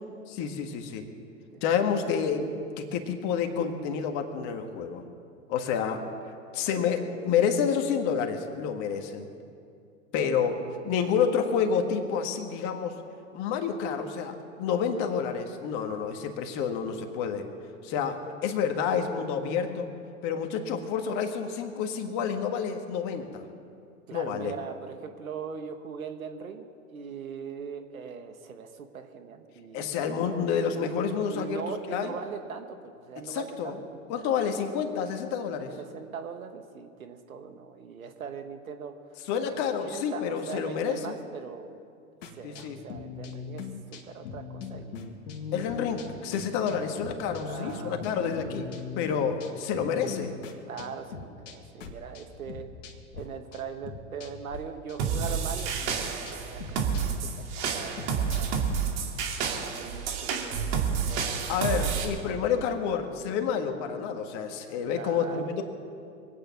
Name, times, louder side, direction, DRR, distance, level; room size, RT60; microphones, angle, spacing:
voice 1, 0.3-1.1 1.6-5.0 5.5-6.0 6.5-9.3 10.1-10.5 10.9-13.0 13.3-17.5 17.8-19.9 20.2-23.5 24.1-24.5 29.7-31.6 31.9-32.1 33.2-33.7 34.1-35.7 39.3-41.2 42.4-42.8 45.5-48.7 49.0-50.3 61.5-65.6, left 7 dB, 45° left, 5 dB, 1.8 m, -29 dB
voice 2, 10.3-10.7 24.1-30.4 31.3-33.9 34.4-34.5 35.5-39.2 39.5-41.8 42.4-43.6 44.1-45.0 45.7-45.8 47.4-48.1 50.7-52.7 53.1-58.6 59.4-61.4 62.0-62.3 64.9-65.5, right 6 dB, 80° right, 7 dB, 1.4 m, -41 dB
sound 1, 42.2-53.2 53.5-54.6 54.9-58.7, left 5 dB, 65° left, 2.0 m, -41 dB
sound 2, 55.0-62.0, right 6 dB, 55° right, 2.5 m, -29 dB
23.5 x 9.3 x 5.9 m, 2.4 s
hypercardioid pair, 105°, 41 cm